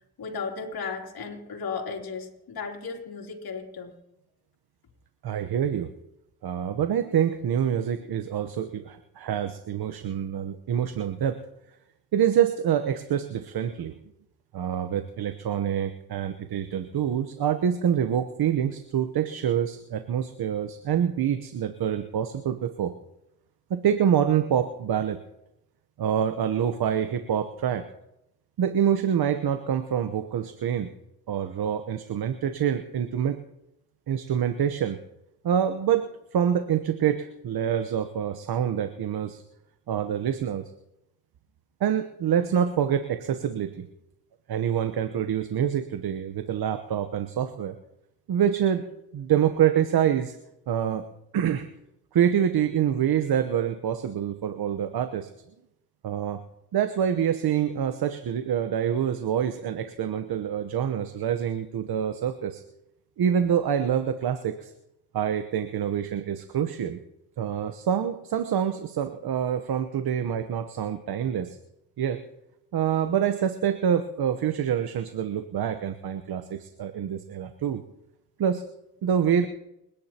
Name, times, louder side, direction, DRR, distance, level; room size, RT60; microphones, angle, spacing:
voice 1, 0.2-3.9, left 5 dB, 60° left, 0 dB, 3.1 m, -35 dB
voice 2, 5.2-5.9 6.4-11.4 12.1-14.0 14.5-22.9 23.7-25.2 26.0-27.8 28.6-30.9 31.3-33.4 34.1-35.0 35.4-39.4 39.9-40.7 41.8-43.9 44.5-47.7 48.3-48.8 49.1-50.4 50.7-51.0 51.3-51.7 52.1-55.3 56.0-56.4 56.7-62.6 63.2-64.7 65.1-67.0 67.4-71.6 72.0-72.2 72.7-77.8 78.4-78.6 79.0-79.5, right 9 dB, 60° right, 9 dB, 1.1 m, -26 dB
29.5 x 10.5 x 2.9 m, 0.87 s
supercardioid pair, 55°, 41 cm